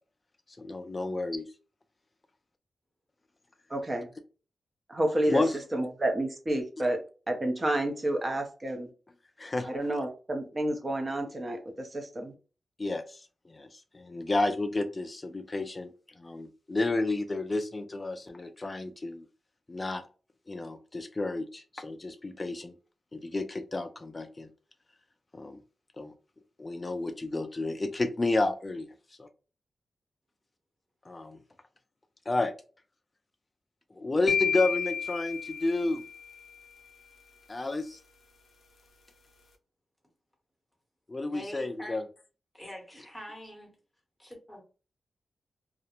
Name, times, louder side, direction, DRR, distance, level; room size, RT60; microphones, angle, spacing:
voice 1, 0.6-1.5 5.3-5.5 9.4-9.7 12.8-15.9 16.2-19.3 19.7-20.0 20.5-22.7 23.1-24.5 25.3-25.6 26.0-26.1 26.6-28.9 29.2-29.3 31.1-31.4 32.3-32.5 33.9-36.0 37.5-38.0 41.1-42.0, left 2 dB, 25° left, 7 dB, 0.4 m, -31 dB
voice 2, 3.7-4.1 4.9-5.4 5.7-8.9 9.6-12.3, right 1 dB, 25° right, 3 dB, 0.6 m, -30 dB
sound 1, 34.3-36.4, left 7 dB, 80° left, 0.5 m, -31 dB
voice 3, 41.2-42.0 42.5-43.7 44.2-44.6, equal, ahead, 0 dB, 0.9 m, -43 dB
2.4 x 2.0 x 2.8 m, 0.35 s
wide cardioid pair, 145°, 0 cm